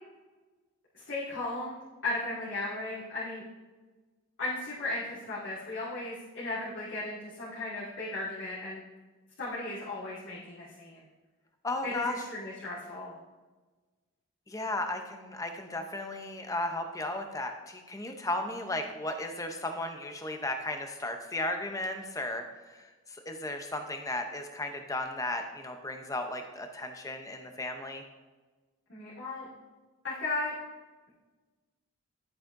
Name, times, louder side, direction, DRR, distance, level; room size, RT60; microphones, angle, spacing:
voice 1, 0.9-3.4 4.4-8.8 9.4-11.0 11.8-13.2 28.9-29.5 30.0-30.5, left 2 dB, 55° left, -10 dB, 2.2 m, -36 dB
voice 2, 11.6-12.1 14.5-28.0, left 2 dB, 15° left, 5 dB, 0.7 m, -35 dB
10.5 x 8.3 x 2.6 m, 1.3 s
head